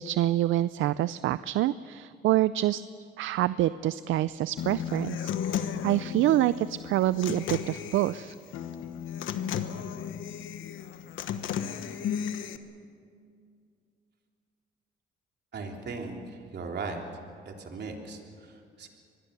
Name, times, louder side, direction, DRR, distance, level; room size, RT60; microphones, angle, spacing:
voice 1, 0.0-2.8 3.2-8.3, right 14 dB, 80° right, 16 dB, 0.5 m, -26 dB
Human voice / Acoustic guitar, 4.6-12.6, left 8 dB, 80° left, 1.2 m, -34 dB
voice 2, 15.5-17.0 17.4-18.9, right 4 dB, 60° right, 2 dB, 3.4 m, -38 dB
25.0 x 20.5 x 6.9 m, 2.3 s
cardioid pair, 90°, 20 cm